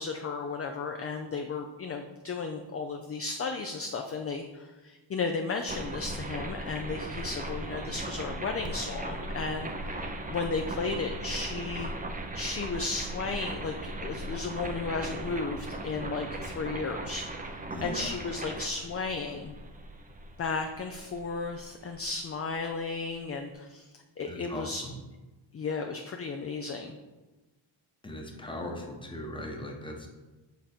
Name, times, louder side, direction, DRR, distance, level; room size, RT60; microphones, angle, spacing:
voice 1, 0.0-9.9 10.3-17.3 17.8-19.5 20.4-24.9 25.5-27.0, left 4 dB, 30° left, 4 dB, 0.4 m, -34 dB
sound 1, 5.7-22.6, right 1 dB, 15° right, 0.6 m, -38 dB
voice 2, 17.7-18.2 24.3-24.9 28.0-30.1, left 1 dB, 10° left, 1 dB, 1.0 m, -39 dB
7.2 x 3.7 x 4.3 m, 1.1 s
wide cardioid pair, 110°, 49 cm